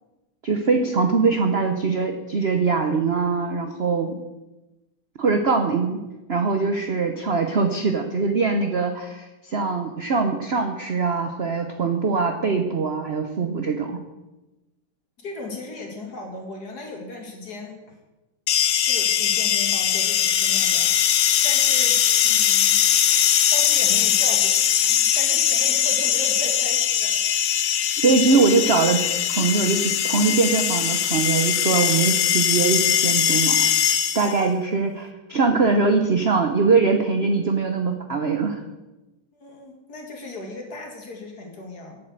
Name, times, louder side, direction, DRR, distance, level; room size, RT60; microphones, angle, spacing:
voice 1, 0.4-4.2 5.2-6.0 6.3-14.0 28.0-29.0 29.3-33.7 34.1-38.6, right 4 dB, 70° right, 5 dB, 0.6 m, -22 dB
voice 2, 15.2-18.0 18.8-22.8 23.5-27.2 39.3-42.0, left 2 dB, 50° left, 1 dB, 2.6 m, -37 dB
sound 1, 18.5-34.4, left 10 dB, 80° left, 0.7 m, -21 dB
8.5 x 7.5 x 8.0 m, 1.1 s
omnidirectional pair, 2.3 m